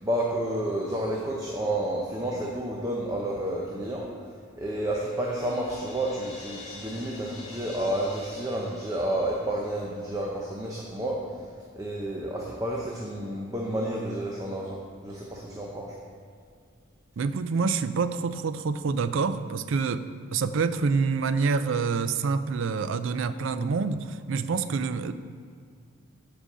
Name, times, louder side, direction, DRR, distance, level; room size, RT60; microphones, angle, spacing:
voice 1, 0.0-4.1 4.6-11.2 11.7-15.9, right 1 dB, 15° right, -3 dB, 0.7 m, -30 dB
Crash cymbal, 5.0-9.9, left 2 dB, 30° left, 1.7 m, -45 dB
voice 2, 17.2-25.1, right 4 dB, 65° right, 12 dB, 0.4 m, -27 dB
7.4 x 5.1 x 6.7 m, 2.2 s
head